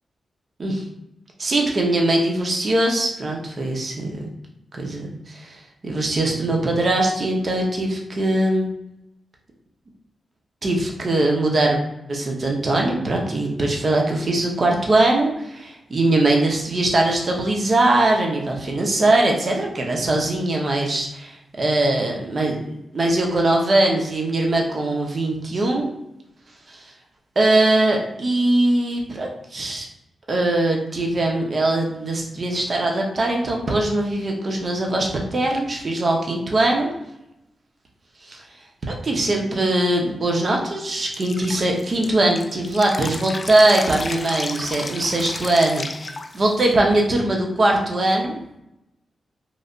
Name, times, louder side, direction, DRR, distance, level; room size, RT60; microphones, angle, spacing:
voice 1, 1.4-4.2 4.7-5.6 5.8-8.7 10.6-11.8 12.1-25.9 26.7-26.8 27.4-29.9 30.3-36.9 38.2-38.4 39.0-48.4, right 2 dB, 50° right, 0 dB, 0.7 m, -21 dB
Drip, 41.1-46.7, left 3 dB, 40° left, 0.3 m, -33 dB
3.2 x 2.5 x 2.4 m, 0.86 s
cardioid pair, 50°, 0 cm